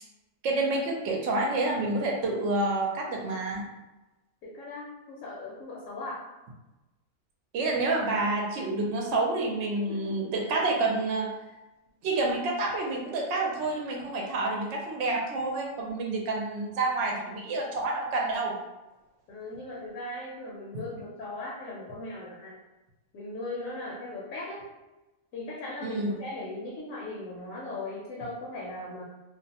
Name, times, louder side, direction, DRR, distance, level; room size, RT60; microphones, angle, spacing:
voice 1, 0.4-3.6 7.5-11.3 12.0-18.6 25.8-26.1, right 2 dB, 65° right, 0 dB, 0.8 m, -28 dB
voice 2, 4.4-6.2 9.9-10.3 19.3-22.6 23.1-24.6 25.3-29.0, left 2 dB, 75° left, -5 dB, 0.9 m, -38 dB
2.5 x 2.1 x 2.7 m, 1.0 s
omnidirectional pair, 1.5 m